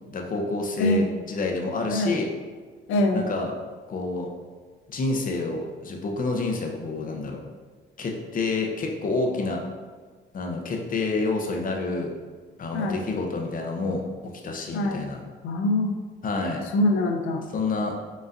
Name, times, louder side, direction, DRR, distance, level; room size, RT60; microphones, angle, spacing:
voice 1, 0.1-2.3 3.1-3.5 3.9-4.3 4.9-7.4 8.0-9.6 10.3-12.1 12.6-15.2 16.2-16.6 17.5-17.9, left 3 dB, 45° left, 2 dB, 0.7 m, -28 dB
voice 2, 0.8-1.1 1.9-2.2 2.9-3.3 12.7-13.0 14.7-15.1 15.4-16.0 16.7-17.4, left 1 dB, 85° left, 4 dB, 0.6 m, -24 dB
4.0 x 3.8 x 2.5 m, 1.5 s
cardioid pair, 90°, 20 cm